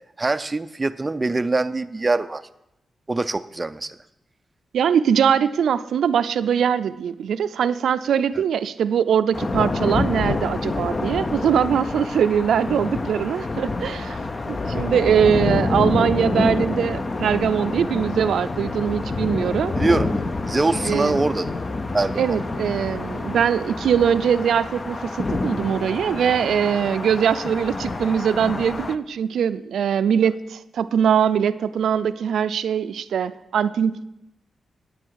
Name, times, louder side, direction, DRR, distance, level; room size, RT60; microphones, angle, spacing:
voice 1, 0.2-2.4 3.1-4.0 19.8-21.6 21.9-22.4, right 3 dB, 20° right, 9 dB, 0.4 m, -23 dB
voice 2, 4.7-14.2 14.5-19.7 20.9-21.2 22.2-34.0, right 8 dB, 90° right, 12 dB, 0.4 m, -22 dB
sound 1, 9.3-28.9, left 3 dB, 30° left, 0.5 m, -27 dB
9.8 x 9.2 x 4.7 m, 0.86 s
wide cardioid pair, 120°, 0 cm